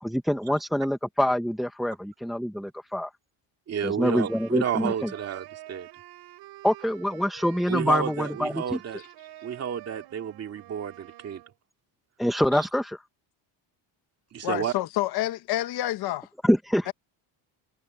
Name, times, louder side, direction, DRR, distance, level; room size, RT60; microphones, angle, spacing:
voice 1, 0.0-3.1 3.8-5.1 6.6-8.8 12.2-13.0 16.4-16.9, equal, ahead, 0.6 m, -25 dB
voice 2, 3.7-5.9 7.7-9.0 9.4-11.4 12.6-12.7 14.3-14.7, right 8 dB, 35° right, 2.3 m, -31 dB
sound 1, 4.0-11.5, right 15 dB, 60° right, 5.4 m, -47 dB
voice 3, 14.4-16.3 16.9-17.0, left 14 dB, 55° left, 1.0 m, -28 dB
cardioid pair, 180°, 45 cm